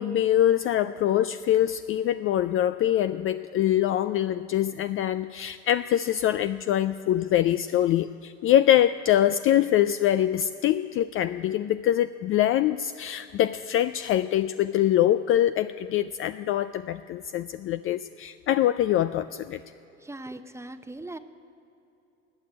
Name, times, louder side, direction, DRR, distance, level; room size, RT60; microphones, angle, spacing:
voice 1, 0.0-19.6, left 12 dB, 35° left, 11 dB, 0.4 m, -24 dB
voice 2, 20.0-21.2, right 2 dB, 5° right, 9 dB, 0.8 m, -39 dB
19.0 x 6.7 x 8.8 m, 2.9 s
hypercardioid pair, 85°, 37 cm